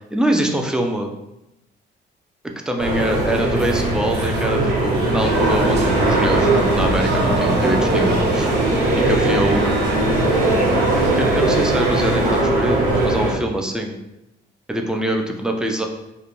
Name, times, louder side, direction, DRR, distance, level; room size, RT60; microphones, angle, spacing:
voice 1, 0.1-1.1 2.7-8.5 8.9-9.8 11.1-13.9 14.7-15.9, right 1 dB, 5° right, 2 dB, 0.3 m, -23 dB
sound 1, 2.8-13.3, right 2 dB, 85° right, 1.0 m, -19 dB
sound 2, 5.2-12.4, right 2 dB, 55° right, 0.7 m, -28 dB
2.4 x 2.1 x 2.9 m, 0.90 s
cardioid pair, 90°, 20 cm